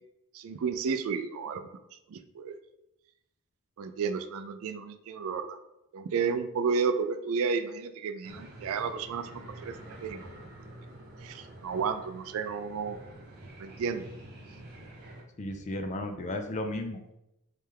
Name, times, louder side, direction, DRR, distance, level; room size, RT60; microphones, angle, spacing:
voice 1, 0.3-1.6 2.1-2.5 3.8-5.6 5.9-10.3 11.2-13.0 13.6-14.1, right 5 dB, 65° right, 10 dB, 0.3 m, -32 dB
sound 1, 8.2-15.2, right 1 dB, 45° right, 0.8 m, -48 dB
voice 2, 15.4-17.1, left 1 dB, 35° left, 6 dB, 0.4 m, -34 dB
3.3 x 3.2 x 3.4 m, 0.87 s
head